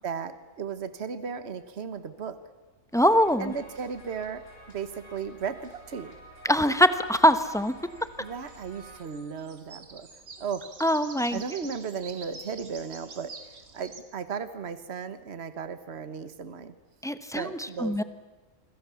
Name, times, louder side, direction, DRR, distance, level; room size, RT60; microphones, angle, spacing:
voice 1, 0.0-2.4 3.4-6.2 8.2-10.1 10.4-10.7 11.3-13.3 13.7-16.7 17.3-18.0, right 6 dB, 50° right, 11 dB, 1.5 m, -35 dB
sound 1, 2.9-9.0, right 1 dB, 60° left, 8.2 m, -50 dB
voice 2, 2.9-3.5 6.4-7.7 10.8-11.4 17.0-18.0, equal, 5° left, 10 dB, 0.9 m, -23 dB
sound 2, 6.8-14.0, right 4 dB, 80° right, 2.5 m, -48 dB
26.5 x 25.5 x 7.1 m, 1.2 s
omnidirectional pair, 1.4 m